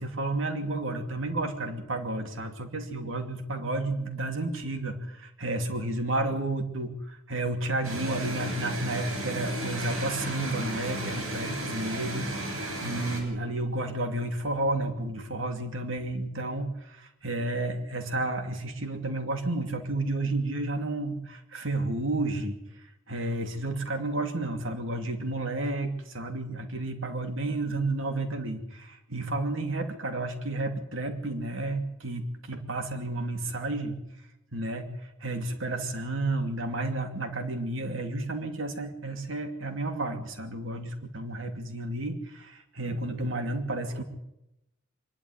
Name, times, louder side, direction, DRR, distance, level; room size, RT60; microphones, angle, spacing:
voice 1, 0.0-34.0 34.5-44.0, right 2 dB, 70° right, 5 dB, 2.8 m, -31 dB
sound 1, 7.8-13.2, right 1 dB, 90° right, 7.4 m, -34 dB
25.0 x 11.0 x 9.8 m, 0.89 s
head